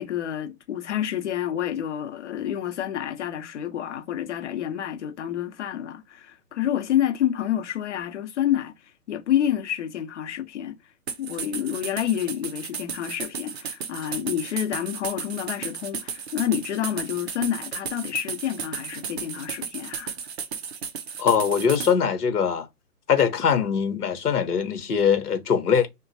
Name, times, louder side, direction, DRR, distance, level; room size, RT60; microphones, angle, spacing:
voice 1, 0.0-10.7 11.2-20.2, left 10 dB, 50° left, 0.9 m, -28 dB
sound 1, 11.1-21.9, right 6 dB, 40° right, 0.6 m, -34 dB
voice 2, 21.2-22.7 23.1-25.9, left 7 dB, 70° left, 1.1 m, -22 dB
3.0 x 2.3 x 2.6 m
figure-of-eight pair, 135°, 47 cm